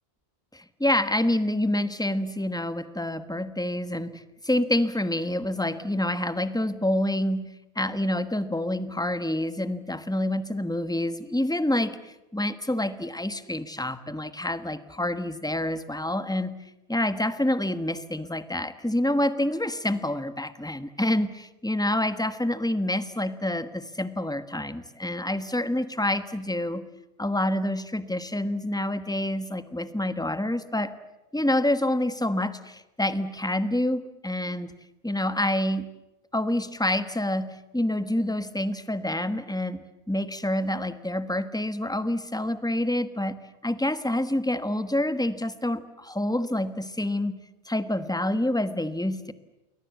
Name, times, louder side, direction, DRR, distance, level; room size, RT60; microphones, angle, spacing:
voice 1, 0.5-7.5 7.7-16.6 16.9-26.9 27.2-30.9 31.3-34.7 35.0-35.9 36.3-43.4 43.6-47.4 47.7-49.3, left 1 dB, 5° left, 11 dB, 1.2 m, -27 dB
29.5 x 21.5 x 8.2 m, 0.99 s
omnidirectional pair, 1.2 m